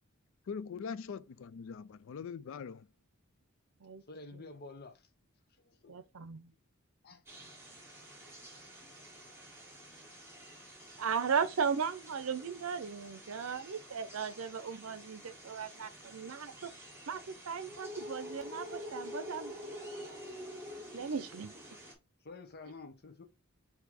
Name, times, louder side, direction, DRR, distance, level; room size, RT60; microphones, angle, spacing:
voice 1, 0.5-2.9, left 6 dB, 65° left, 0.4 m, -42 dB
voice 2, 4.1-5.1 5.6-5.9 7.0-7.2 10.8-10.9 22.2-23.2, left 3 dB, 50° left, 0.8 m, -50 dB
voice 3, 5.9-6.5 11.0-16.7 17.1-19.5 20.9-21.5, right 6 dB, 75° right, 0.6 m, -36 dB
sound 1, 7.3-21.9, equal, 10° right, 1.7 m, -48 dB
4.6 x 2.8 x 4.2 m
head